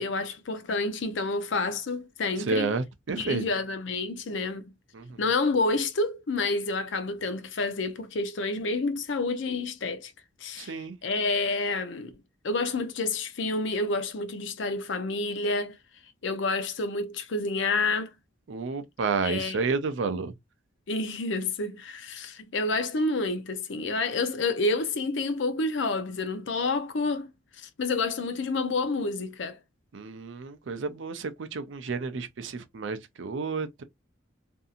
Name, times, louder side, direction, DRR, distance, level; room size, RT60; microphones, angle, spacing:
voice 1, 0.0-2.7 3.2-4.7 5.2-10.1 10.4-10.8 11.0-12.1 12.4-15.8 16.2-18.1 19.2-19.6 20.9-27.3 27.6-29.6, left 3 dB, 65° left, 0.5 m, -29 dB
voice 2, 2.5-3.4 4.9-5.2 10.6-11.0 18.5-20.3 29.9-33.8, right 4 dB, 70° right, 0.5 m, -31 dB
2.6 x 2.6 x 2.4 m
head